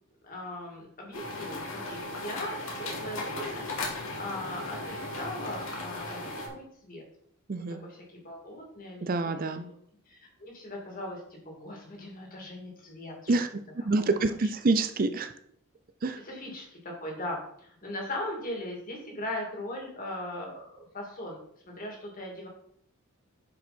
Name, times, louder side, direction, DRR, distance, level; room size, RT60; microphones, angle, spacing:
voice 1, 0.2-3.7 4.2-7.0 7.6-9.6 10.1-13.4 13.8-14.5 16.2-21.4 21.7-22.5, left 1 dB, 40° left, -1 dB, 2.8 m, -39 dB
sound 1, 1.1-6.5, left 2 dB, 65° left, 2.5 m, -36 dB
voice 2, 7.5-7.8 9.0-9.6 13.3-13.5 13.8-15.3 16.0-16.2, right 3 dB, 40° right, 9 dB, 0.5 m, -27 dB
10.5 x 5.6 x 4.4 m, 0.67 s
head